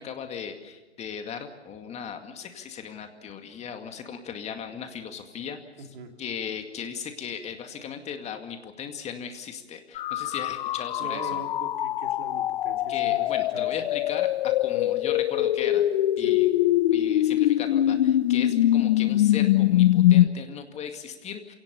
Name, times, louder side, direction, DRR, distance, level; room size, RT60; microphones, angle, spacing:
voice 1, 0.0-5.9 6.2-11.4 12.9-15.8 16.2-16.5 16.9-21.5, left 7 dB, 20° left, 6 dB, 2.2 m, -37 dB
voice 2, 5.8-6.1 11.0-13.3 13.5-13.7 16.2-16.3, right 4 dB, 65° right, 4 dB, 3.4 m, -41 dB
sound 1, 10.0-20.3, left 13 dB, 50° left, 0.7 m, -23 dB
27.5 x 18.0 x 7.0 m, 1.2 s
hypercardioid pair, 120°, 32 cm